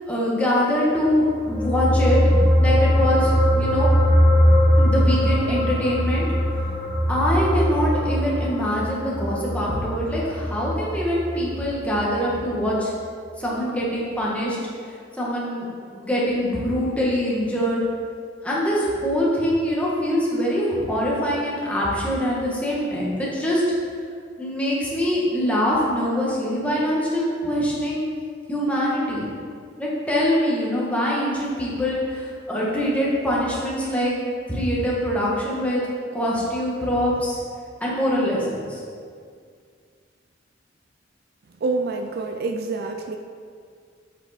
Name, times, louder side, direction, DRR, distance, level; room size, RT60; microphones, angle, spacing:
voice 1, 0.1-3.9 4.8-6.3 7.1-12.9 13.4-14.6 14.8-15.6 15.9-17.8 18.4-23.6 24.4-28.1 28.5-29.3 29.8-34.2 34.5-35.8 36.1-37.4 37.8-38.8, equal, 5° left, -6 dB, 1.5 m, -24 dB
sound 1, 1.2-11.9 12.2-12.4, equal, 40° left, 1.5 m, -21 dB
voice 2, 41.6-43.2, right 3 dB, 55° right, 4 dB, 0.4 m, -27 dB
7.9 x 5.3 x 4.2 m, 2.2 s
head